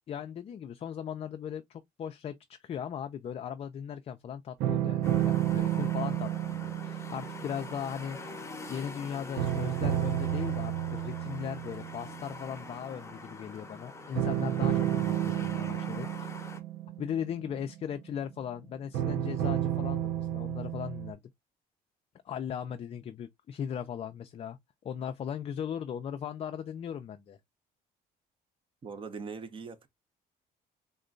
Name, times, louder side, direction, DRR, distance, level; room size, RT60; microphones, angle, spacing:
voice 1, 0.1-8.3 8.7-16.3 17.0-21.2 22.3-24.6 24.8-27.4, left 8 dB, 35° left, 0.4 m, -38 dB
sound 1, 4.6-9.0 9.4-12.6 14.2-18.2 18.9-21.1, right 12 dB, 85° right, 0.7 m, -31 dB
sound 2, 5.0-16.6, left 3 dB, 15° left, 0.8 m, -45 dB
voice 2, 28.8-29.9, right 5 dB, 30° right, 0.7 m, -41 dB
3.7 x 2.2 x 3.7 m
cardioid pair, 110°, 17 cm